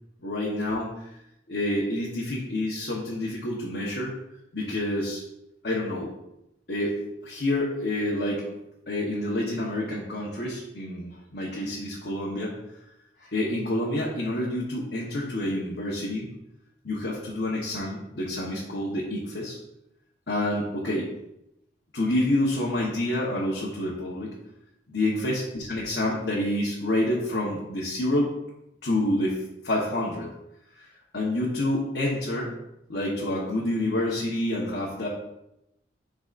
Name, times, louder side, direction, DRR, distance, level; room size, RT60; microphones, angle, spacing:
voice 1, 0.2-1.1 1.5-4.1 4.5-5.2 5.6-6.1 6.7-8.4 8.9-12.5 13.2-16.3 16.8-19.6 20.3-21.1 21.9-24.3 24.9-28.3 28.8-30.3 30.8-30.9 31.1-32.5 32.9-35.1, left 1 dB, 60° left, -5 dB, 1.1 m, -28 dB
10.5 x 3.9 x 2.5 m, 0.85 s
head